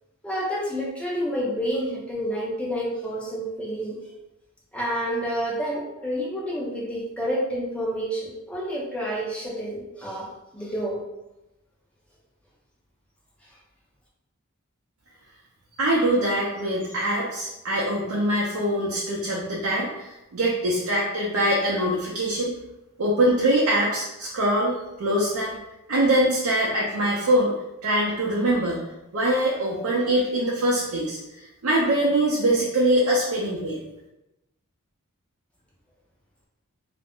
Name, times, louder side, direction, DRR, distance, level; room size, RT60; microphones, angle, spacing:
voice 1, 0.2-4.0 4.7-10.3 10.5-11.0, equal, 5° left, -5 dB, 0.5 m, -29 dB
voice 2, 15.8-22.5 23.0-25.6 25.9-27.5 27.8-28.9 29.1-33.8, right 1 dB, 75° right, -4 dB, 0.5 m, -23 dB
2.4 x 2.0 x 3.5 m, 0.95 s
head